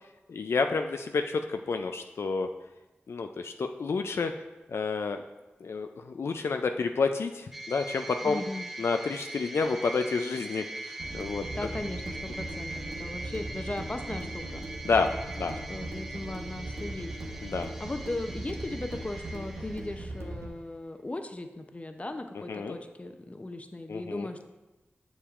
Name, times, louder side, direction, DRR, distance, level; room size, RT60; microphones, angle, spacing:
voice 1, 0.3-2.5 3.1-4.3 4.7-5.2 5.6-8.4 8.8-11.5 14.8-15.5 17.4-17.7 22.5-22.8 23.9-24.3, left 4 dB, 75° left, 6 dB, 0.3 m, -29 dB
sound 1, 7.5-20.4, right 2 dB, 5° right, 0.7 m, -42 dB
voice 2, 8.2-8.7 11.5-14.6 15.7-17.1 17.8-24.4, left 2 dB, 30° left, 6 dB, 0.6 m, -37 dB
sound 2, 11.0-20.5, right 2 dB, 85° right, 0.8 m, -39 dB
7.1 x 6.9 x 2.5 m, 1.1 s
cardioid pair, 45°, 4 cm